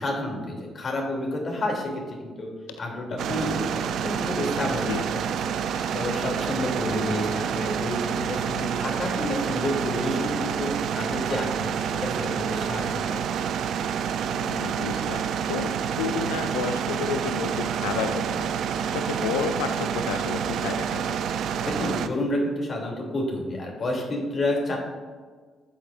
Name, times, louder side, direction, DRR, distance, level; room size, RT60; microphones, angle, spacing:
voice 1, 0.0-2.5 2.8-5.5 5.9-13.2 21.7-24.8, left 1 dB, 50° left, 0 dB, 2.7 m, -30 dB
sound 1, 3.2-22.1, right 8 dB, 70° right, 0.4 m, -28 dB
voice 2, 14.3-21.2, left 6 dB, 85° left, 7 dB, 0.4 m, -31 dB
12.0 x 7.9 x 2.5 m, 1.5 s
hypercardioid pair, 50°, 0 cm